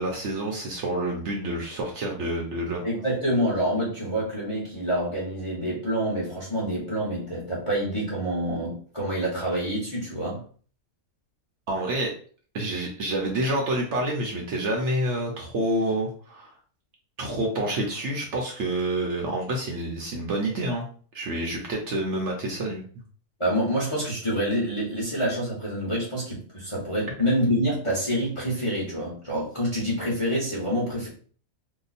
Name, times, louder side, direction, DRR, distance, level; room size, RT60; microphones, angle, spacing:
voice 1, 0.0-2.8 11.7-12.1 12.5-16.5 17.2-20.9 21.1-22.8, right 1 dB, 60° right, 0 dB, 0.9 m, -28 dB
voice 2, 2.8-10.4 23.4-31.1, equal, 25° left, -5 dB, 0.9 m, -27 dB
2.8 x 2.2 x 4.0 m, 0.44 s
omnidirectional pair, 1.5 m